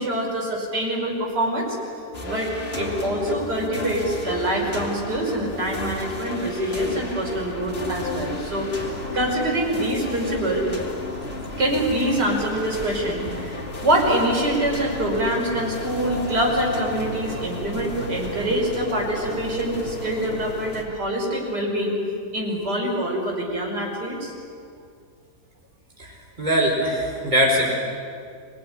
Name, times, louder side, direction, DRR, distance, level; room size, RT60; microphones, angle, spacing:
voice 1, 0.0-1.8 2.2-10.7 11.6-22.0 22.3-24.3, right 1 dB, 75° right, -2 dB, 5.9 m, -25 dB
sound 1, 2.1-20.8, left 1 dB, 35° left, 2.8 m, -33 dB
voice 2, 26.0-27.7, equal, 25° right, -2 dB, 4.7 m, -22 dB
26.0 x 20.5 x 10.0 m, 2.3 s
omnidirectional pair, 1.8 m